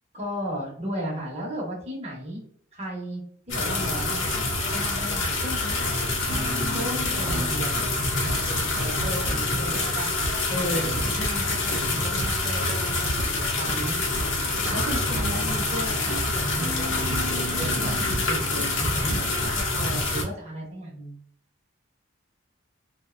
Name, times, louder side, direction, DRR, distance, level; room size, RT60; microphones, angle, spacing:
voice 1, 0.1-2.4 2.7-10.1 10.5-14.0 14.5-17.9 18.3-21.2, equal, 30° right, -3 dB, 0.8 m, -35 dB
sound 1, 3.5-20.2, left 2 dB, 65° left, 0.6 m, -26 dB
sound 2, 6.3-19.4, right 1 dB, 60° right, 0.5 m, -34 dB
2.6 x 2.1 x 2.4 m, 0.62 s
head